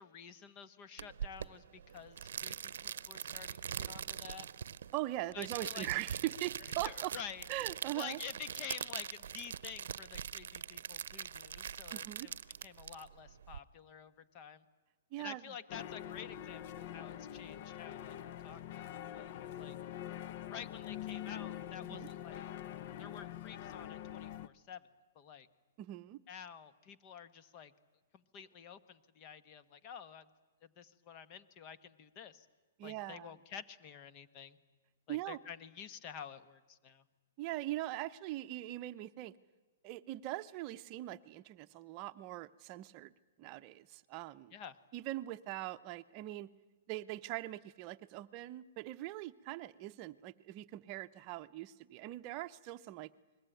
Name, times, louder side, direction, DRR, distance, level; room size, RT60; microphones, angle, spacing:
voice 1, 0.0-4.5 5.3-5.9 6.8-7.4 7.9-12.4 12.6-14.6 15.2-18.2 18.4-18.6 18.9-19.8 20.5-22.4 23.0-24.8 25.1-25.5 26.3-27.7 28.1-30.3 30.6-32.5 32.8-34.6 35.1-37.0 44.5-44.7, left 8 dB, 35° left, 11 dB, 1.3 m, -49 dB
sound 1, 1.0-13.6, right 8 dB, 70° right, 0.7 m, -43 dB
voice 2, 4.9-7.1 7.5-8.2 11.9-12.3 15.1-15.6 21.9-22.1 25.8-26.2 32.8-33.4 35.1-35.4 37.4-39.3 39.8-43.1 43.4-44.5 44.9-46.5 46.9-53.1, right 16 dB, 35° right, 11 dB, 0.8 m, -41 dB
sound 2, 15.7-24.5, left 11 dB, 50° left, 0.8 m, -45 dB
28.5 x 21.0 x 9.2 m, 1.3 s
hypercardioid pair, 150°, 0 cm